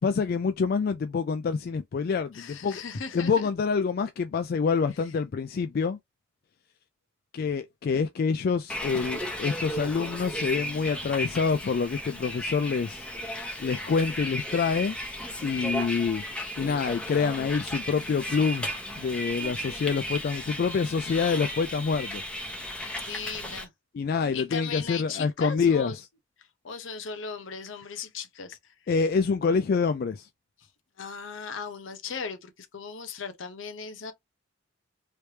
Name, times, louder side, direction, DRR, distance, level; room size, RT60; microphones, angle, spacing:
voice 1, 0.0-2.8 3.1-6.0 7.3-13.1 13.6-15.0 15.4-16.2 16.6-18.7 18.9-22.2 23.9-25.9 28.9-30.3, left 5 dB, 50° left, 0.3 m, -26 dB
voice 2, 2.3-3.5 5.0-5.1 23.0-23.7 24.3-26.0 26.4-28.9 30.6-30.7 31.0-34.1, left 5 dB, 70° left, 0.8 m, -37 dB
Bus, 8.7-23.6, equal, 5° left, 0.9 m, -35 dB
3.2 x 3.2 x 2.8 m
head